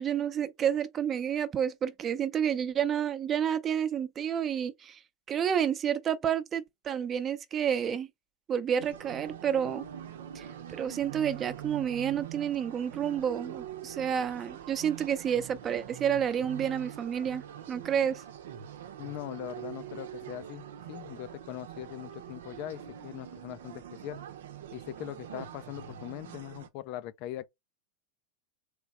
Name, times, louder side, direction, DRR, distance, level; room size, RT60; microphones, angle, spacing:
voice 1, 0.0-5.0 5.3-8.1 8.5-9.8 10.3-18.2, right 8 dB, 30° right, 0.8 m, -30 dB
sound 1, 8.8-26.7, right 10 dB, 75° right, 0.8 m, -44 dB
voice 2, 19.0-24.2 24.7-27.5, left 14 dB, 50° left, 0.6 m, -41 dB
3.5 x 3.3 x 4.3 m
hypercardioid pair, 110°, 0 cm